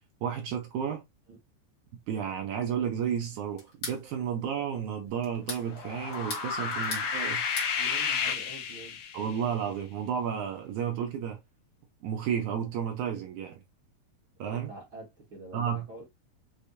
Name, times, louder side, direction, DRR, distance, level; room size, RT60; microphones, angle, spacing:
voice 1, 0.2-1.0 2.1-7.4 9.1-11.4 12.0-13.6 14.4-14.7 15.5-15.8, right 8 dB, 75° right, 1.8 m, -32 dB
sound 1, 3.6-4.0 5.2-5.7 6.1-7.1 7.3-7.7, left 3 dB, 45° left, 1.4 m, -38 dB
sound 2, 5.6-9.4, left 6 dB, 75° left, 1.6 m, -31 dB
voice 2, 7.8-9.0 14.4-16.0, right 2 dB, 45° right, 1.9 m, -46 dB
6.7 x 2.7 x 2.7 m
omnidirectional pair, 4.4 m